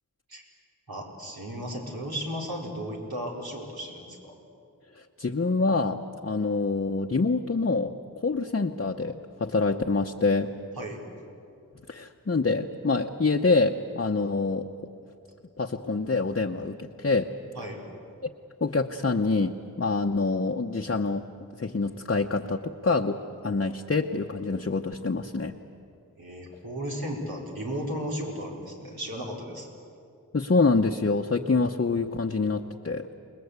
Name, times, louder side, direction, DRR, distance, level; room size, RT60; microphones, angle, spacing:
voice 1, 0.9-4.4 10.7-11.0 17.5-17.8 26.2-29.7, equal, 85° right, -2 dB, 4.7 m, -35 dB
voice 2, 5.2-10.5 11.9-14.7 15.6-17.3 18.6-19.5 19.8-21.3 21.6-25.5 30.3-33.1, left 3 dB, 40° left, 2 dB, 0.9 m, -26 dB
28.5 x 20.5 x 8.2 m, 2.6 s
wide cardioid pair, 60°, 35 cm